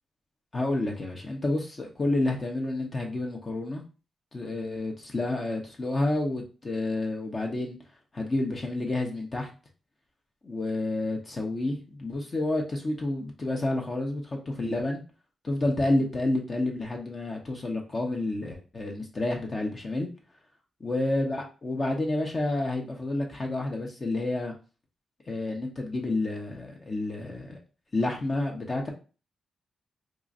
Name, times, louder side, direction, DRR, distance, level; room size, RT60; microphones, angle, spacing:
voice 1, 0.5-3.8 4.3-7.8 8.1-9.5 10.4-15.0 15.4-20.1 20.8-24.5 25.3-27.6 27.9-28.9, left 2 dB, 35° left, 1 dB, 0.9 m, -29 dB
4.6 x 2.5 x 2.6 m, 0.34 s
cardioid pair, 90°, 0 cm